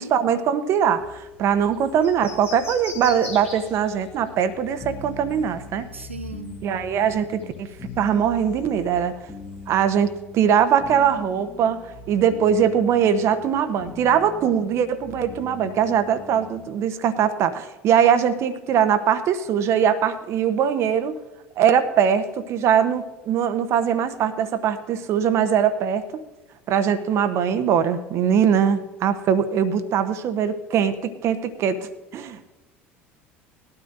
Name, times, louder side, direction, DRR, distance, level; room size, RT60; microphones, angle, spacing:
voice 1, 0.0-5.9 6.6-9.1 9.7-21.2 21.6-26.3 26.7-32.5, right 8 dB, 45° right, 11 dB, 0.9 m, -21 dB
sound 1, 1.0-10.2, left 3 dB, 85° left, 2.5 m, -43 dB
sound 2, 4.8-16.7, left 2 dB, 20° left, 1.6 m, -41 dB
voice 2, 5.9-6.6, right 3 dB, 85° right, 5 dB, 0.6 m, -36 dB
20.0 x 12.5 x 2.6 m, 1.1 s
figure-of-eight pair, 65°, 7 cm